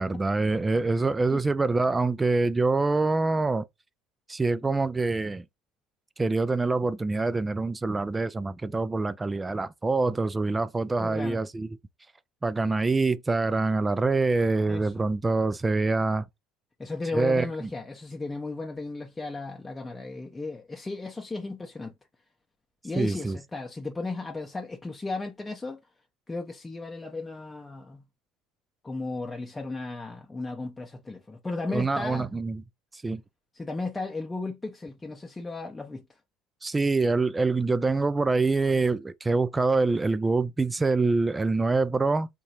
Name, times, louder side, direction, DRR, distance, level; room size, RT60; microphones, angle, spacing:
voice 1, 0.0-3.7 4.3-5.4 6.2-11.7 12.4-16.2 17.1-17.7 23.0-23.4 31.7-32.6 32.9-33.2 36.6-42.3, right 3 dB, 15° right, 0.3 m, -25 dB
voice 2, 11.0-11.4 14.7-15.1 16.8-21.9 22.8-25.8 26.3-28.0 28.8-32.3 33.5-36.0, left 3 dB, 15° left, 0.7 m, -35 dB
3.6 x 2.9 x 2.9 m
figure-of-eight pair, 60°, 0 cm